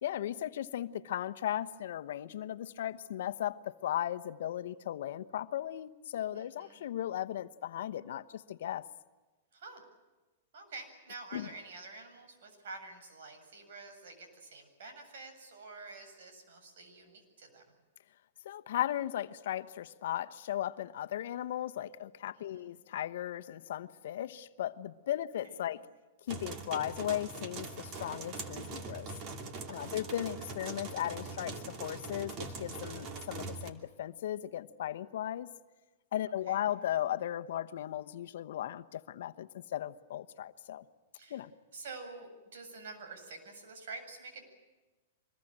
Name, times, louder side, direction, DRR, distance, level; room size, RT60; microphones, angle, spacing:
voice 1, 0.0-8.9 11.3-11.5 18.4-25.9 26.3-29.1 29.7-35.5 36.1-40.8 41.3-41.5, left 12 dB, 65° left, 10 dB, 1.1 m, -36 dB
voice 2, 6.3-6.8 9.5-9.8 10.5-17.6 22.3-22.8 29.7-30.2 36.5-36.7 41.1-41.4 41.7-44.4, right 3 dB, 70° right, 6 dB, 7.8 m, -48 dB
sound 1, 26.3-33.7, right 4 dB, 30° right, 2.6 m, -42 dB
24.5 x 21.5 x 8.9 m, 1.2 s
hypercardioid pair, 155°, 0 cm